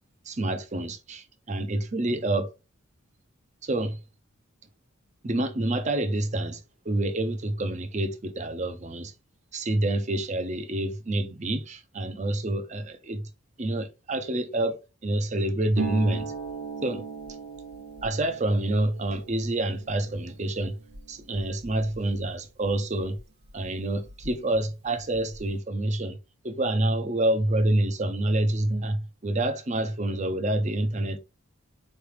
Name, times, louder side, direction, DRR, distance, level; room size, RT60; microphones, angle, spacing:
voice 1, 0.3-2.5 3.6-4.0 5.2-9.1 9.5-13.2 13.6-16.3 16.8-17.0 18.0-20.7 21.1-23.2 23.5-26.2 26.4-31.2, right 1 dB, 35° right, 0.6 m, -27 dB
Harp, 15.7-23.2 23.5-24.6 24.9-25.5, right 4 dB, 55° right, 1.1 m, -38 dB
4.7 x 3.3 x 3.2 m
head